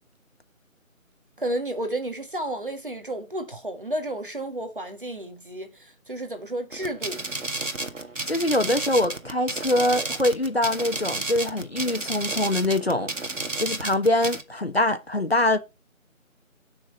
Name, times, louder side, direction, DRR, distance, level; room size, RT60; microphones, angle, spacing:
voice 1, 1.4-7.2, right 1 dB, 40° right, 2.0 m, -32 dB
sound 1, 6.7-14.4, right 2 dB, 65° right, 2.0 m, -32 dB
voice 2, 8.2-13.1 13.6-15.6, left 1 dB, 50° left, 1.2 m, -23 dB
13.0 x 6.4 x 4.4 m
figure-of-eight pair, 180°, 41 cm